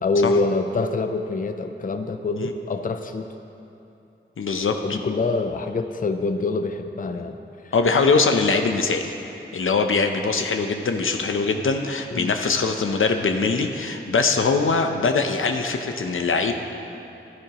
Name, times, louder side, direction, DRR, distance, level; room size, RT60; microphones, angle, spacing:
voice 1, 0.0-3.3 4.8-7.4 7.6-7.7 12.1-12.3, left 3 dB, 40° left, 7 dB, 0.5 m, -25 dB
voice 2, 4.4-4.8 7.2-7.3 7.7-9.1 9.5-16.5, left 4 dB, 85° left, 5 dB, 0.7 m, -22 dB
14.0 x 11.0 x 3.0 m, 2.8 s
wide cardioid pair, 70°, 21 cm